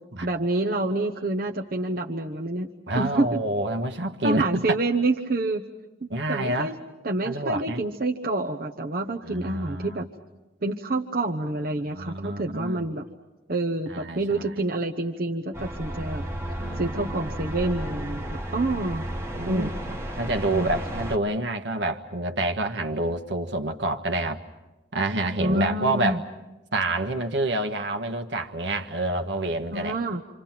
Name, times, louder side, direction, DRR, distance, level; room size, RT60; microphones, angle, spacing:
voice 1, 0.2-3.4 4.2-5.6 6.0-6.7 7.0-10.1 10.6-13.0 13.5-16.2 16.8-19.1 19.5-19.7 20.5-20.8 25.4-26.2 29.7-30.2, right 2 dB, 50° right, 2 dB, 1.0 m, -27 dB
voice 2, 2.9-4.6 6.1-6.7 7.2-7.8 9.3-10.0 11.9-12.9 13.9-14.2 16.6-18.0 19.3-24.4 24.9-26.2 26.7-30.0, right 2 dB, 75° right, 5 dB, 1.5 m, -28 dB
sound 1, 15.5-21.2, right 1 dB, 15° right, 1.3 m, -33 dB
27.0 x 27.0 x 6.0 m, 1.0 s
head